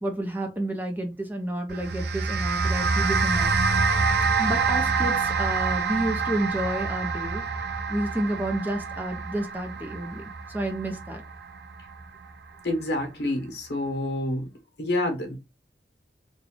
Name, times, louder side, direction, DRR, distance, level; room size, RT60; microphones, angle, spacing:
voice 1, 0.0-3.5 4.4-7.4 7.9-10.2 10.5-11.2, right 1 dB, 10° right, 0.6 m, -30 dB
sound 1, 1.7-12.2, right 4 dB, 65° right, 0.5 m, -26 dB
voice 2, 12.6-14.5 14.8-15.4, left 1 dB, 70° left, 1.2 m, -28 dB
3.5 x 2.3 x 3.6 m
head